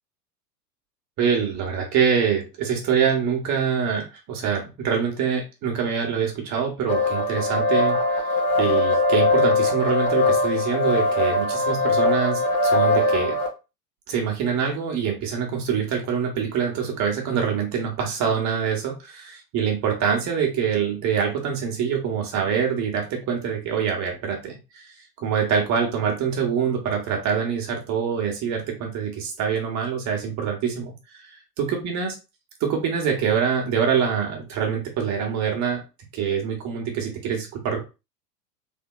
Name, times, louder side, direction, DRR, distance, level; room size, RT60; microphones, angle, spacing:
voice 1, 1.2-8.0 8.6-13.4 14.1-19.2 19.5-24.9 25.2-30.9 31.3-32.1 32.6-35.8 36.1-37.9, right 7 dB, 35° right, 2 dB, 1.3 m, -25 dB
sound 1, 6.9-13.5, left 2 dB, 45° left, 1.3 m, -21 dB
3.5 x 3.5 x 2.3 m, 0.28 s
figure-of-eight pair, 90°, 49 cm